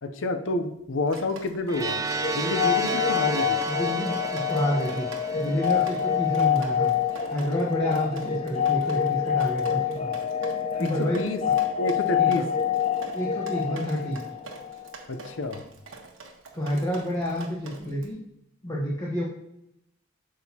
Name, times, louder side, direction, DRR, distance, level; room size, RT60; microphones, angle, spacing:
voice 1, 0.0-2.0 2.3-3.6 10.8-11.4 11.8-12.5 15.1-15.6, left 2 dB, 70° left, 8 dB, 0.7 m, -29 dB
Drip, 1.1-18.1, right 3 dB, 80° right, 1.2 m, -45 dB
sound 1, 1.7-6.5, right 2 dB, 15° right, 0.5 m, -32 dB
sound 2, 2.2-14.9, left 8 dB, 35° left, 0.4 m, -27 dB
voice 2, 3.6-5.1 5.3-6.9 7.3-10.1 10.7-11.2 12.2-12.4 13.1-14.2 16.5-18.2 18.6-19.2, equal, 20° left, -4 dB, 1.0 m, -29 dB
8.5 x 6.4 x 2.8 m, 0.82 s
head